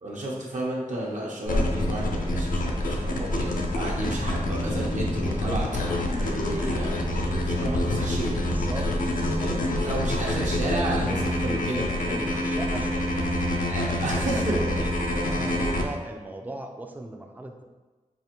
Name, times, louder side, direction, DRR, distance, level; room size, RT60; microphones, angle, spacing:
voice 1, 0.0-8.9 9.4-12.4 13.7-14.8 15.1-15.5, right 1 dB, 65° right, -4 dB, 0.8 m, -32 dB
sound 1, 1.5-15.8, left 1 dB, 85° left, 0.5 m, -27 dB
voice 2, 4.0-4.4 8.5-8.9 9.3-9.6 11.9-13.4 13.9-14.4 14.8-14.9 15.3-17.6, right 2 dB, 10° right, 3 dB, 0.3 m, -38 dB
4.8 x 2.5 x 2.9 m, 1.3 s
wide cardioid pair, 105°, 14 cm